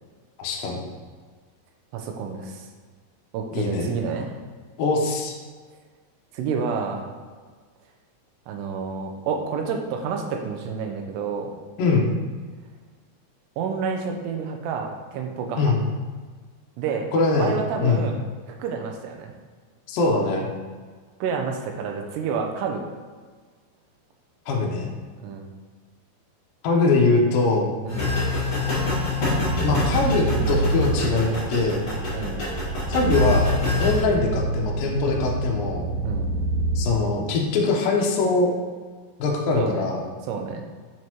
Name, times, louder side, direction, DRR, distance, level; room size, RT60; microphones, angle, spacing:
voice 1, 0.4-0.8 3.5-3.9 4.8-5.4 11.8-12.1 15.6-15.8 17.1-18.0 19.9-20.5 24.5-24.9 26.6-27.7 29.6-31.8 32.9-33.5 33.8-35.9 36.8-38.5 39.2-40.0, left 3 dB, 75° left, -1 dB, 2.1 m, -22 dB
voice 2, 1.9-2.7 3.3-4.3 6.3-7.1 8.5-11.6 13.6-15.7 16.8-17.1 17.4-18.2 18.5-19.3 21.2-22.8 25.2-25.5 27.9-28.1 32.1-32.5 36.0-36.3 39.5-39.9 40.3-40.7, right 5 dB, 80° right, 3 dB, 2.7 m, -29 dB
sound 1, 27.9-34.0, left 3 dB, 45° left, 1.4 m, -26 dB
sound 2, 29.4-36.8, right 2 dB, 60° right, 2.4 m, -27 dB
6.9 x 6.2 x 3.0 m, 1.5 s
omnidirectional pair, 5.1 m